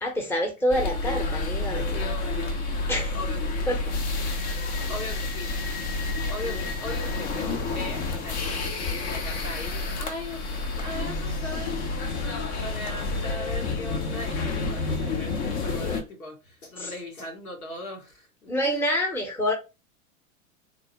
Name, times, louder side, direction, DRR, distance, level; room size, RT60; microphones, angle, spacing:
voice 1, 0.0-1.9 2.9-3.2 3.7-4.0 16.8-16.9 18.5-19.5, equal, 5° left, 0.8 m, -27 dB
sound 1, 0.7-16.0, left 3 dB, 40° left, 0.7 m, -29 dB
voice 2, 1.9-2.6 3.1-3.7 4.9-5.5 6.3-18.9, left 1 dB, 85° left, 1.5 m, -39 dB
3.5 x 2.0 x 3.0 m
hypercardioid pair, 100°, 41 cm